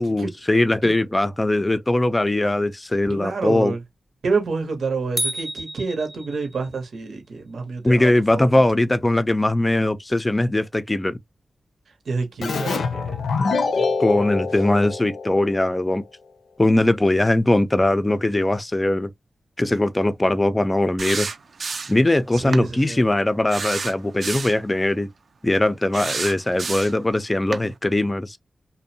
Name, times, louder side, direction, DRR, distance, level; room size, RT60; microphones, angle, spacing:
voice 1, 0.0-3.7 7.8-11.2 14.0-16.0 16.6-19.1 19.6-21.3 21.9-25.1 25.4-28.4, left 1 dB, 25° left, 0.4 m, -20 dB
voice 2, 3.1-3.8 4.2-8.6 12.0-14.3 22.3-23.1, right 4 dB, 85° right, 0.8 m, -28 dB
sound 1, 5.2-6.8, right 1 dB, 20° right, 0.6 m, -30 dB
Keyboard (musical), 12.4-15.8, left 4 dB, 80° left, 0.5 m, -25 dB
sound 2, 21.0-22.1 22.5-22.7 23.5-24.6 25.9-27.0 27.5-27.7, right 4 dB, 65° right, 0.4 m, -29 dB
2.6 x 2.0 x 2.7 m
cardioid pair, 55°, 0 cm